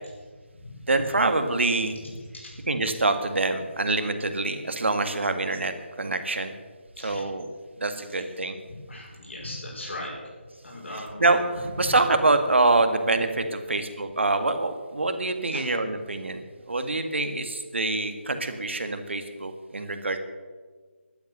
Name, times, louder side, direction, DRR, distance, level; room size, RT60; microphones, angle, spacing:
voice 1, 0.9-2.0 2.7-6.5 7.0-7.5 7.8-8.6 10.9-11.4 11.8-20.2, right 2 dB, 70° right, 7 dB, 1.8 m, -25 dB
voice 2, 2.3-2.6 7.0-7.2 8.9-10.1 10.6-11.4 11.8-11.9 15.5-15.6, left 1 dB, 70° left, -4 dB, 5.8 m, -38 dB
13.5 x 11.5 x 6.7 m, 1.5 s
figure-of-eight pair, 180°, 7 cm